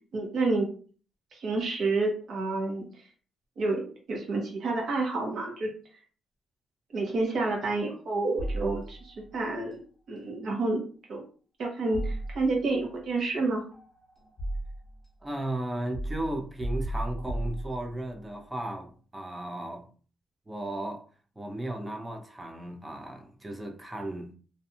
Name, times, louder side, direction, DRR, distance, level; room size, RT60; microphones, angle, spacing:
voice 1, 0.1-0.7 1.3-2.8 3.6-3.8 4.1-5.7 6.9-9.8 10.1-11.2 11.6-13.6, right 3 dB, 55° right, 0.9 m, -29 dB
sound 1, 8.4-9.3 11.9-12.8 13.7-15.0 15.9-18.2, right 1 dB, 10° left, 1.0 m, -34 dB
voice 2, 15.2-19.9 20.5-21.1 21.4-24.3, right 1 dB, 10° right, 0.5 m, -35 dB
2.5 x 2.3 x 2.7 m
cardioid pair, 150°, 0 cm